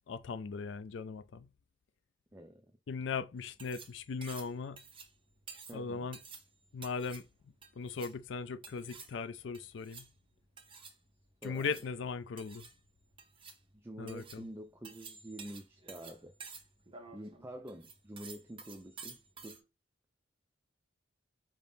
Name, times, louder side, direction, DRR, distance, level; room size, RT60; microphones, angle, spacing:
voice 1, 0.1-1.5 2.9-4.8 5.7-6.2 6.7-7.2 7.8-10.0 11.4-12.6 14.0-14.4, left 5 dB, 65° left, 0.4 m, -38 dB
voice 2, 2.3-2.6 5.7-6.1 11.4-11.7 13.7-16.3 17.1-19.6, right 1 dB, 10° right, 0.4 m, -47 dB
sound 1, 3.4-19.6, right 5 dB, 25° right, 0.9 m, -52 dB
5.1 x 2.7 x 3.5 m
head